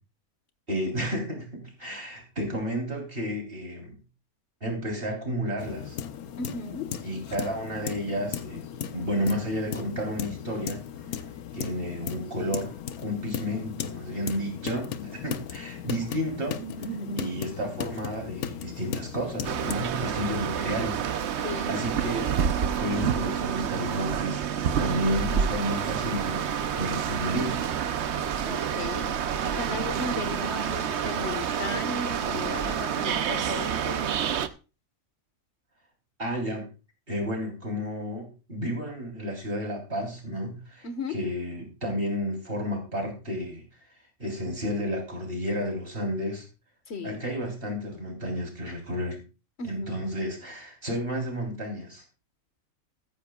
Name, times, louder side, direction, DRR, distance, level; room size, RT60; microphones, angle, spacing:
voice 1, 0.7-4.0 4.6-6.0 7.0-8.7 8.9-10.8 11.5-12.7 13.0-16.6 17.2-21.0 21.3-22.3 22.7-24.4 24.8-27.7 36.2-36.7 37.1-43.6 44.2-46.5 47.0-49.2 49.6-52.0, equal, 40° right, 3.8 m, -31 dB
sound 1, 5.6-19.8, left 9 dB, 90° left, 1.3 m, -37 dB
voice 2, 6.4-6.9 16.6-17.3 21.4-21.8 28.4-34.1 40.8-41.2 46.9-47.2 49.6-50.0, left 2 dB, 50° left, 1.5 m, -36 dB
sound 2, 19.4-34.5, right 8 dB, 60° right, 0.9 m, -28 dB
14.5 x 14.0 x 2.3 m
omnidirectional pair, 1.5 m